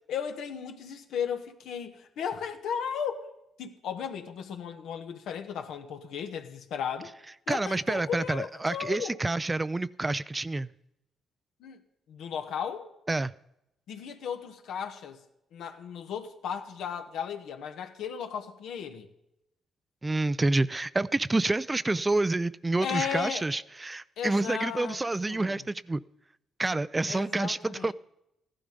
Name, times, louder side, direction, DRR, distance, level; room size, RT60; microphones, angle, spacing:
voice 1, 0.1-3.3 3.6-7.1 7.5-9.2 11.6-11.8 12.1-12.9 13.9-15.2 15.5-19.1 22.8-23.4 24.2-25.0 25.3-25.6 27.1-27.9, left 8 dB, 80° left, 1.4 m, -35 dB
voice 2, 7.5-10.7 13.1-13.3 20.0-26.0 26.6-27.9, right 2 dB, 20° right, 0.4 m, -28 dB
15.0 x 11.5 x 5.2 m
cardioid pair, 90°, 0 cm